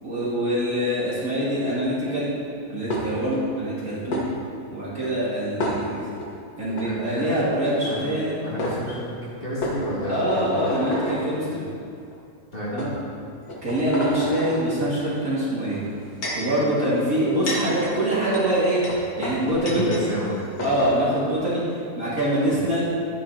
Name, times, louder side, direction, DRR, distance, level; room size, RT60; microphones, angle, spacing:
voice 1, 0.0-2.3 2.7-4.2 4.7-6.0 6.6-8.3 10.1-11.6 12.7-13.0 13.6-15.8 16.3-18.8 19.2-19.8 20.6-21.6 22.0-22.9, right 1 dB, 45° right, -9 dB, 2.5 m, -24 dB
sound 1, 2.9-3.4 4.1-4.3 5.6-6.3 6.7-6.9 8.2-8.3 8.6-8.8 9.6-11.2 12.0-12.1 12.8-12.9 13.4-14.6 15.7-16.5 17.1-20.1 20.3-20.4 20.6-20.9, left 1 dB, 50° left, 1.8 m, -30 dB
voice 2, 6.8-7.4 7.9-8.1 8.4-9.1 9.4-10.7 11.3-11.4 12.5-12.8 19.7-20.4, equal, 25° left, -11 dB, 2.8 m, -30 dB
11.0 x 9.7 x 2.9 m, 2.3 s
omnidirectional pair, 2.1 m